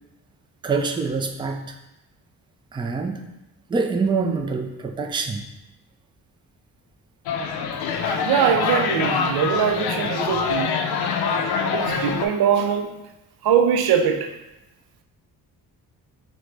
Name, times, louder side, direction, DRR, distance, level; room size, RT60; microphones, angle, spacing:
voice 1, 0.6-1.8 2.7-3.3 3.7-5.4, right 4 dB, 15° right, 3 dB, 0.3 m, -25 dB
sound 1, 7.3-12.3, left 5 dB, 85° left, 0.6 m, -25 dB
voice 2, 8.0-10.8 11.7-13.0 13.4-14.3, right 8 dB, 75° right, 6 dB, 0.6 m, -22 dB
6.2 x 2.2 x 3.3 m, 0.95 s
cardioid pair, 110°, 38 cm